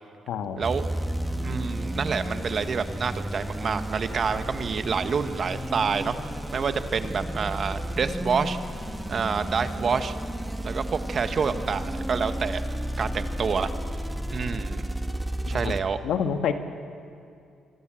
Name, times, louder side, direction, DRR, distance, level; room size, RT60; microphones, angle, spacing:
voice 1, 0.3-0.7 15.5-15.8 16.0-16.5, left 8 dB, 80° left, 7 dB, 1.6 m, -27 dB
sound 1, 0.6-15.8, equal, 5° right, 2.1 m, -32 dB
voice 2, 1.4-6.1 6.5-8.6 9.1-10.1 10.6-12.6 13.0-13.7 14.3-14.8 15.5-16.0, right 6 dB, 50° right, 9 dB, 1.5 m, -28 dB
26.0 x 24.5 x 7.7 m, 2.4 s
cardioid pair, 90°, 0 cm